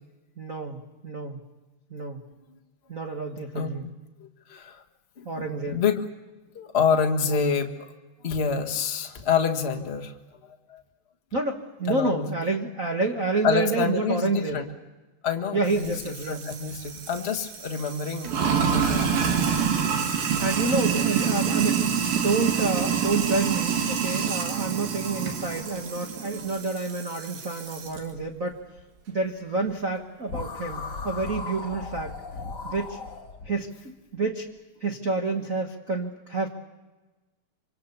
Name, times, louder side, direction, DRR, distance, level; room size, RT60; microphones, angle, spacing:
voice 1, 0.4-1.4 1.9-2.2 2.9-3.8 5.2-5.8 7.2-7.4 11.3-14.6 15.5-16.5 20.4-21.9 22.1-28.6 29.1-32.1 32.6-33.0 33.4-34.5 34.8-36.5, right 3 dB, 60° right, 3 dB, 0.8 m, -29 dB
voice 2, 4.2-4.8 5.2-6.0 6.5-7.9 8.2-10.1 10.7-10.8 11.9-12.3 13.4-14.6 15.2-19.2, left 6 dB, 50° left, 4 dB, 0.7 m, -27 dB
Sink (filling or washing), 15.7-28.0, right 7 dB, 85° right, 4.1 m, -27 dB
sound 1, 30.3-33.5, left 4 dB, 30° left, 3.1 m, -36 dB
26.0 x 25.5 x 6.9 m, 1.2 s
omnidirectional pair, 4.0 m